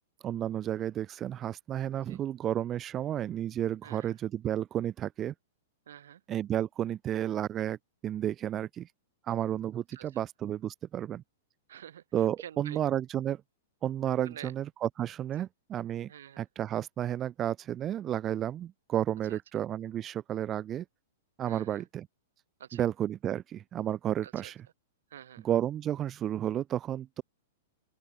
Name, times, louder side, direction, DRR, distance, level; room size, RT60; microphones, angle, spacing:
voice 1, 0.2-5.3 6.3-8.9 9.2-11.2 12.1-13.4 13.8-16.1 16.4-20.8 21.4-22.1 22.7-24.6 25.4-27.2, right 11 dB, 20° right, 1.0 m, -32 dB
voice 2, 3.8-4.1 5.9-6.2 9.9-10.2 11.7-12.8 14.2-14.5 16.1-16.4 19.3-19.4 21.5-21.8 22.6-22.9 24.2-24.5 25.1-25.5, right 10 dB, 75° right, 4.7 m, -48 dB
open air
supercardioid pair, 165°, 0 cm